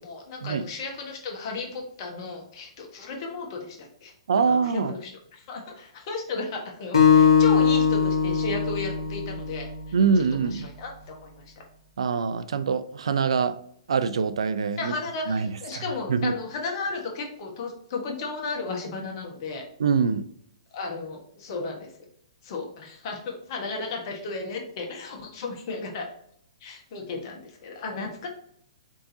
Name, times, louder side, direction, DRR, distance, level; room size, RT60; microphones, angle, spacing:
voice 1, 0.0-4.1 4.4-9.7 10.5-11.4 14.8-19.6 20.7-21.9 22.4-26.0 26.6-28.3, left 3 dB, 45° left, 1.2 m, -34 dB
voice 2, 4.3-4.9 9.9-10.7 12.0-13.6 13.9-14.9 15.3-15.8 16.1-16.4 19.8-20.3, right 5 dB, 75° right, 0.3 m, -24 dB
Acoustic guitar, 6.9-10.2, left 6 dB, 75° left, 1.1 m, -21 dB
3.8 x 3.6 x 2.8 m
hypercardioid pair, 120°, 3 cm